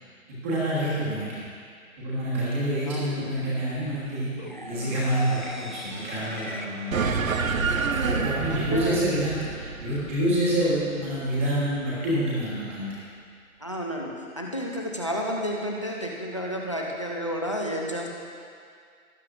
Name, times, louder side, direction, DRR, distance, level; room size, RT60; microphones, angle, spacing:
voice 1, 0.3-1.4 2.0-4.3 4.6-7.0 7.9-12.9, right 1 dB, 10° right, -8 dB, 1.3 m, -27 dB
voice 2, 2.9-3.3 8.5-9.0 13.6-14.1 14.4-18.1, equal, 20° left, -1 dB, 0.6 m, -31 dB
sound 1, 4.4-8.3, left 1 dB, 35° right, 0.4 m, -40 dB
sound 2, 6.9-11.7, right 4 dB, 65° right, 0.9 m, -28 dB
18.5 x 9.5 x 2.5 m, 2.2 s
hypercardioid pair, 165°, 43 cm